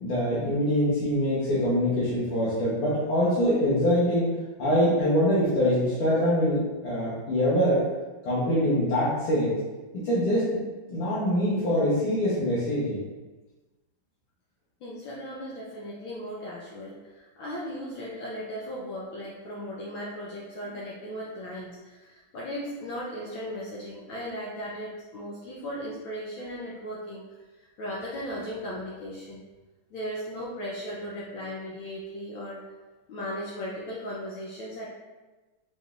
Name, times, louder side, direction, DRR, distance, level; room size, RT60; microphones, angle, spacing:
voice 1, 0.0-4.3 4.6-7.8 8.3-9.6 10.0-10.5 10.9-13.1, equal, 90° left, -11 dB, 2.0 m, -24 dB
voice 2, 14.8-27.2 27.6-29.4 29.9-32.6 33.1-34.9, equal, 75° left, -6 dB, 1.5 m, -37 dB
5.3 x 3.1 x 2.4 m, 1.2 s
omnidirectional pair, 2.3 m